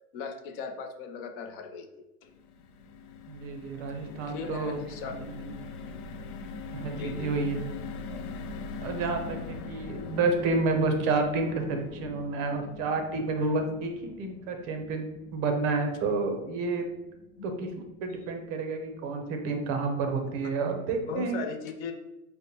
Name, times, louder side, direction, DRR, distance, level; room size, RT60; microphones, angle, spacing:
voice 1, 0.1-1.9 4.0-5.3 6.8-7.3 17.4-17.5 21.1-21.9, left 5 dB, 40° left, 5 dB, 0.5 m, -38 dB
sound 1, 2.2-18.5 18.9-19.1 19.3-19.6, left 4 dB, 90° left, 0.6 m, -43 dB
voice 2, 3.3-5.5 6.7-7.6 8.8-13.9 14.2-15.0 15.3-16.8 17.4-17.7 18.0-21.4, right 3 dB, 30° right, 5 dB, 0.6 m, -30 dB
5.0 x 2.1 x 2.8 m, 0.98 s
hypercardioid pair, 135°, 44 cm